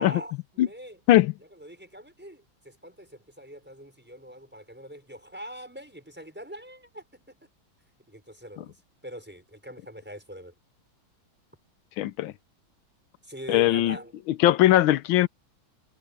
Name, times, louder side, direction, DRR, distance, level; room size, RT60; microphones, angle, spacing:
voice 1, 0.0-1.0 1.5-7.4 8.1-10.5 13.2-14.2, equal, 5° right, 6.0 m, -43 dB
voice 2, 12.0-12.3 13.5-14.0 14.4-15.3, left 14 dB, 80° left, 1.4 m, -20 dB
omnidirectional pair, 2.3 m